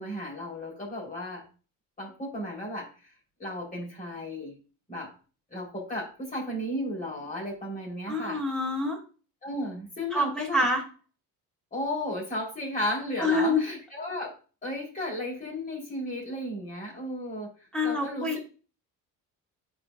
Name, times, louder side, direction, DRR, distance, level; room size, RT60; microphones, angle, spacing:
voice 1, 0.0-1.4 2.0-2.9 3.4-4.6 4.9-5.1 5.5-8.4 9.4-10.7 11.7-14.3 14.6-17.5 17.8-18.3, left 1 dB, 25° left, -3 dB, 4.4 m, -34 dB
voice 2, 8.1-9.0 10.1-10.8 13.2-13.6 17.7-18.4, left 2 dB, ahead, -2 dB, 2.5 m, -26 dB
11.0 x 4.8 x 2.6 m, 0.36 s
cardioid pair, 140°, 34 cm